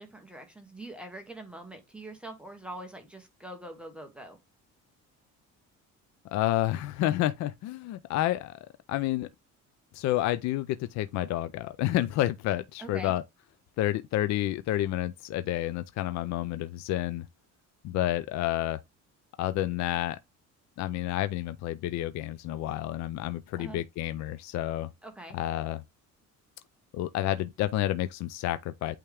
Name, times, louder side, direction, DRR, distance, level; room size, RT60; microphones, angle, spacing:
voice 1, 0.0-4.4 12.8-13.1 23.5-23.8 25.0-25.4, right 1 dB, 5° right, 1.1 m, -43 dB
voice 2, 6.3-8.6 8.9-9.3 9.9-13.2 13.8-17.2 17.8-18.8 19.4-20.2 20.8-24.9 25.3-25.8 26.9-29.0, left 14 dB, 65° left, 0.5 m, -29 dB
8.5 x 3.6 x 3.4 m
cardioid pair, 170°, 30 cm